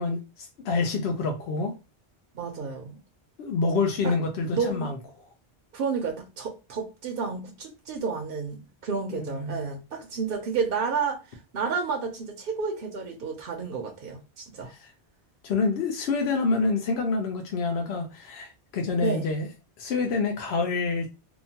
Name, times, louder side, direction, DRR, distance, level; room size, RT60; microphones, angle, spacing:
voice 1, 0.0-1.7 3.4-5.0 9.1-9.6 14.7-14.9 15.4-19.5 19.8-21.1, left 4 dB, 75° left, 0.8 m, -27 dB
voice 2, 2.3-3.0 4.0-4.1 4.5-4.9 5.7-14.7 19.0-19.3, right 5 dB, 60° right, 0.7 m, -31 dB
2.8 x 2.2 x 2.7 m
omnidirectional pair, 1.1 m